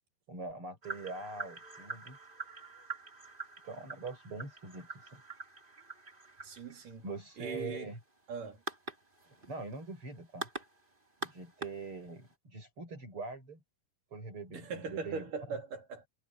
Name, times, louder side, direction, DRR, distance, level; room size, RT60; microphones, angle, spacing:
voice 1, 0.3-2.2 3.6-5.2 7.0-8.0 9.4-10.5 11.2-13.6 14.1-15.6, right 3 dB, 35° right, 8.2 m, -43 dB
sound 1, 0.8-12.3, right 3 dB, 15° right, 2.7 m, -45 dB
voice 2, 6.4-7.0 7.4-7.9 8.3-8.6 14.5-16.1, right 4 dB, 65° right, 5.1 m, -40 dB
omnidirectional pair, 4.0 m